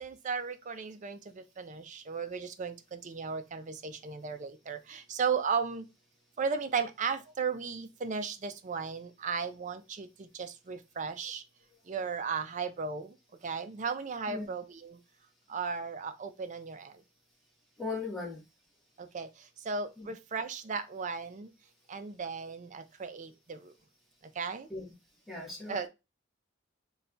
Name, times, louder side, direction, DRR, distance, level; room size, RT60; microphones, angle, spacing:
voice 1, 0.0-5.8 6.4-11.4 11.9-13.1 13.4-15.0 15.5-16.9 19.0-19.3 19.7-21.5 21.9-23.6 24.4-24.7 25.7-25.9, right 5 dB, 40° right, 0.4 m, -35 dB
voice 2, 17.8-18.4 20.0-20.1 24.7-24.8 25.3-25.7, left 3 dB, ahead, 1.3 m, -37 dB
3.2 x 2.3 x 3.8 m
head